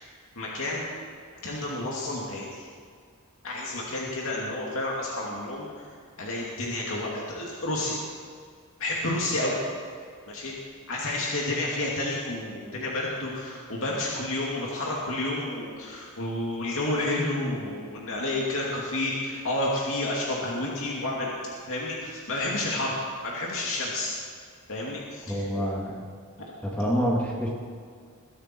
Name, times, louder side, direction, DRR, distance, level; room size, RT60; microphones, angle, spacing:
voice 1, 0.4-0.8 1.4-2.7 3.4-5.7 6.2-8.0 8.8-9.6 10.3-10.5 10.9-21.4 21.7-22.9 23.2-24.1 24.7-25.6, left 2 dB, 65° left, -4 dB, 2.5 m, -30 dB
voice 2, 25.3-26.0 26.6-27.5, equal, 5° left, -3 dB, 2.2 m, -27 dB
21.5 x 12.0 x 4.6 m, 2.1 s
head